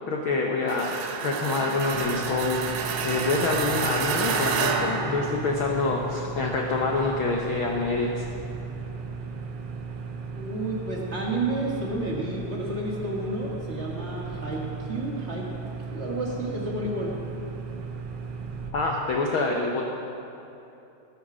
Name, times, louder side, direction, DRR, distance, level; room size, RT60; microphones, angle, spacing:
voice 1, 0.1-1.0 1.2-2.7 3.0-8.2 18.7-19.8, left 3 dB, 85° left, 0 dB, 1.1 m, -26 dB
sound 1, 0.7-5.9, right 5 dB, 90° right, 2.5 m, -29 dB
sound 2, 1.9-18.7, right 5 dB, 65° right, 1.5 m, -36 dB
voice 2, 10.3-15.5 15.9-17.2, right 2 dB, 30° right, -3 dB, 1.5 m, -31 dB
19.0 x 6.6 x 6.1 m, 3.0 s
omnidirectional pair, 3.6 m